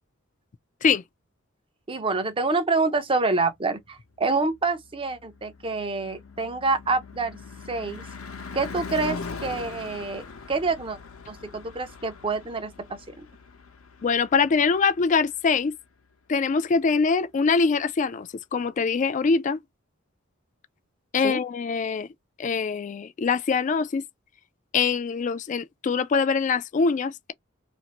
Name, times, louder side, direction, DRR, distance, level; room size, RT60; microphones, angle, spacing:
voice 1, 1.9-7.4 7.7-8.1 8.5-11.0 11.3-12.7 13.2-13.3 21.2-21.4, right 3 dB, 25° right, 0.6 m, -27 dB
Car passing by / Truck / Engine, 4.9-15.2, left 4 dB, 90° left, 0.8 m, -41 dB
voice 2, 14.0-15.8 16.3-19.6 21.1-22.1 22.4-24.0 24.7-27.3, left 5 dB, 35° left, 0.3 m, -23 dB
2.5 x 2.5 x 2.9 m
head